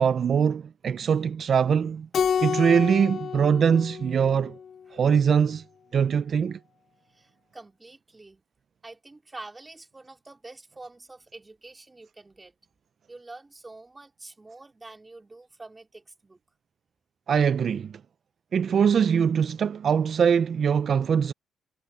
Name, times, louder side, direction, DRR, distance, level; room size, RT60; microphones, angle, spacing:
voice 1, 0.0-2.1 2.4-4.6 4.9-5.6 5.9-6.6 17.3-18.0 18.5-21.3, right 7 dB, 55° right, 0.5 m, -22 dB
Keyboard (musical), 2.1-4.8, left 7 dB, 55° left, 0.8 m, -29 dB
voice 2, 7.1-8.4 8.8-12.6 13.1-16.4, right 2 dB, 20° right, 3.6 m, -46 dB
cardioid pair, 90°, 0 cm